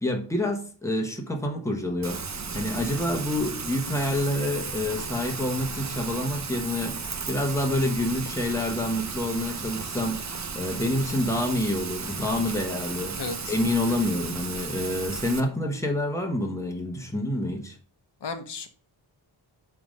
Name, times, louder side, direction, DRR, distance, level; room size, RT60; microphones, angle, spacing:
voice 1, 0.0-2.2 2.5-10.2 10.5-13.2 13.5-17.8, left 1 dB, 5° left, 1.3 m, -27 dB
Rain, 2.0-15.4, right 5 dB, 35° right, 0.8 m, -35 dB
voice 2, 13.1-13.6 18.2-18.7, left 4 dB, 55° left, 1.1 m, -34 dB
8.5 x 3.6 x 5.4 m
wide cardioid pair, 135°, 48 cm